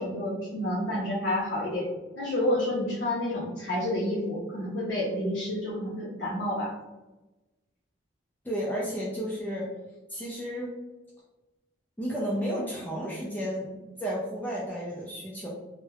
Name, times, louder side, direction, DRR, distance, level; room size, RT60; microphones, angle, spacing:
voice 1, 0.0-1.9 2.2-6.7, left 1 dB, 75° left, -5 dB, 0.7 m, -29 dB
voice 2, 8.4-9.7 10.1-10.8 12.0-15.5, equal, 10° left, -5 dB, 0.3 m, -32 dB
3.1 x 2.0 x 2.3 m, 1.1 s
head